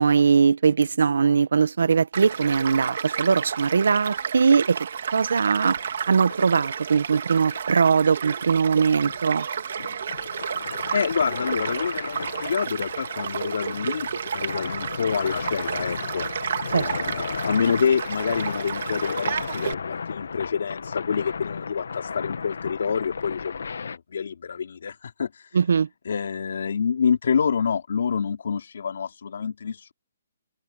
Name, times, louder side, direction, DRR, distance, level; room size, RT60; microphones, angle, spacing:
voice 1, 0.0-9.5 16.7-17.1 25.5-25.9, right 5 dB, 75° right, 1.3 m, -21 dB
Child speech kid speaking / Stream / Car passing by, 2.1-19.7, right 7 dB, 50° right, 2.4 m, -32 dB
Pouring Gravel, 5.6-24.0, left 5 dB, 80° left, 1.6 m, -35 dB
voice 2, 10.9-25.6 26.0-29.9, left 6 dB, 60° left, 4.9 m, -27 dB
hypercardioid pair, 175°, 0 cm